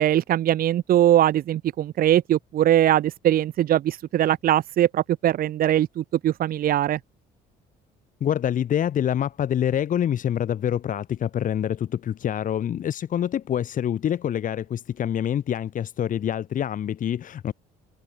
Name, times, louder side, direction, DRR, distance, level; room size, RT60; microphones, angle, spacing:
voice 1, 0.0-7.0, right 12 dB, 60° right, 1.3 m, -21 dB
voice 2, 8.2-17.5, left 10 dB, 50° left, 2.4 m, -26 dB
cardioid pair, 110°, 17 cm